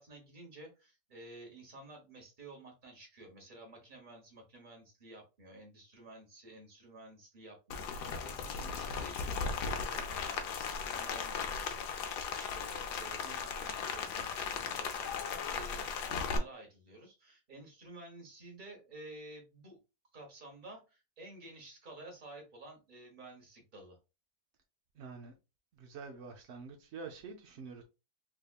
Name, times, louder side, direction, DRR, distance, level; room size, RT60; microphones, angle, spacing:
voice 1, 0.0-19.8 20.1-24.0, right 2 dB, 30° right, 1.2 m, -52 dB
Rain, 7.7-16.4, left 6 dB, 80° left, 1.2 m, -37 dB
voice 2, 25.0-25.3 25.7-27.8, right 4 dB, 75° right, 0.6 m, -47 dB
3.5 x 3.3 x 2.3 m
omnidirectional pair, 1.8 m